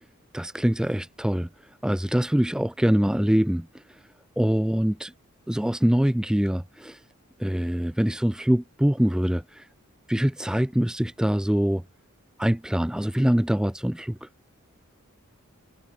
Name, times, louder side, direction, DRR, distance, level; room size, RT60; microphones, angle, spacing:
voice 1, 0.3-1.5 1.8-4.0 4.4-5.1 5.5-7.0 7.4-9.7 10.1-11.8 12.4-14.3, equal, 5° right, 0.3 m, -24 dB
head